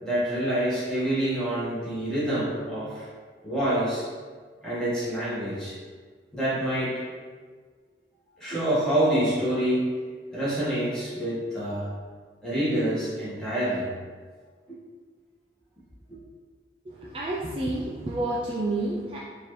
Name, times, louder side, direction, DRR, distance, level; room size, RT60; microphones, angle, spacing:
voice 1, 0.0-3.1 3.4-4.1 4.6-5.8 6.3-7.0 8.4-10.0 10.3-11.9 12.4-13.9 16.1-16.2, right 1 dB, 5° left, -11 dB, 1.3 m, -27 dB
voice 2, 16.9-19.2, right 2 dB, 30° right, -5 dB, 0.3 m, -29 dB
4.2 x 2.7 x 3.1 m, 1.5 s
head